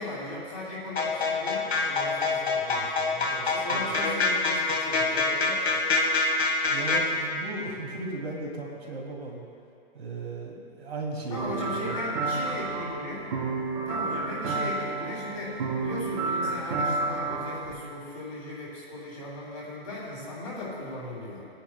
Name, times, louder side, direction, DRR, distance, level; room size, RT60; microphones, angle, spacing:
voice 1, 0.0-5.8 11.3-13.3 13.9-21.5, left 2 dB, 35° left, -5 dB, 2.8 m, -38 dB
sound 1, 1.0-7.0, left 3 dB, 80° left, 1.6 m, -25 dB
voice 2, 3.5-3.8 6.7-9.5 9.9-12.1, right 3 dB, 90° right, -2 dB, 2.6 m, -36 dB
sound 2, 11.4-17.7, right 3 dB, 45° right, 1.9 m, -30 dB
18.5 x 9.9 x 2.2 m, 2.4 s
hypercardioid pair, 165°, 31 cm